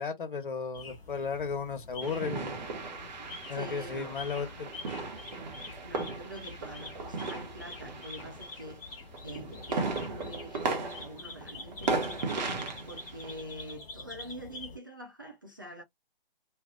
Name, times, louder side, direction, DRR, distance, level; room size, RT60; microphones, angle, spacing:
voice 1, 0.0-2.6 3.5-4.7, left 5 dB, 55° left, 1.3 m, -34 dB
sound 1, 0.7-14.8, left 3 dB, 10° left, 1.3 m, -46 dB
sound 2, 2.0-8.8 9.1-13.5, right 3 dB, 45° right, 1.1 m, -36 dB
voice 2, 3.5-5.1 5.8-8.8 9.2-12.5 12.8-15.8, right 1 dB, 20° right, 0.4 m, -45 dB
3.2 x 2.4 x 3.7 m
hypercardioid pair, 155°, 30 cm